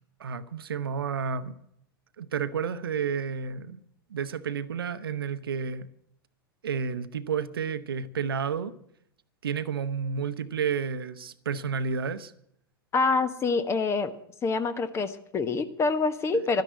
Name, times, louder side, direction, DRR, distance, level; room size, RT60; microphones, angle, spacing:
voice 1, 0.2-1.6 2.2-3.8 4.1-5.9 6.6-8.7 9.4-12.3 16.3-16.6, right 6 dB, 70° right, 0.9 m, -31 dB
voice 2, 12.9-14.1 14.4-16.6, left 4 dB, 20° left, 1.1 m, -26 dB
12.5 x 10.5 x 7.7 m
figure-of-eight pair, 100°, 13 cm